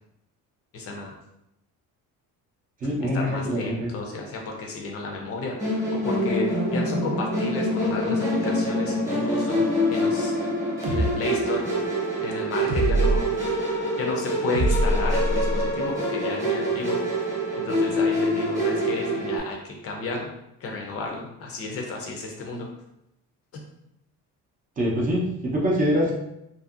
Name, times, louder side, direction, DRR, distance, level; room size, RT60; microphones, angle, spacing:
voice 1, 0.7-1.1 2.8-10.5 10.9-13.3 14.0-17.0 17.6-20.3 20.6-22.7, left 3 dB, 45° left, 0 dB, 0.5 m, -32 dB
voice 2, 2.8-3.9 24.8-26.1, equal, 25° right, -3 dB, 0.5 m, -24 dB
Musical instrument, 5.6-19.4, equal, 10° right, 0.9 m, -25 dB
sound 1, 10.8-11.1 12.7-13.2 14.5-15.7, right 1 dB, 75° right, 0.7 m, -23 dB
2.6 x 2.6 x 2.4 m, 0.83 s
cardioid pair, 165°, 33 cm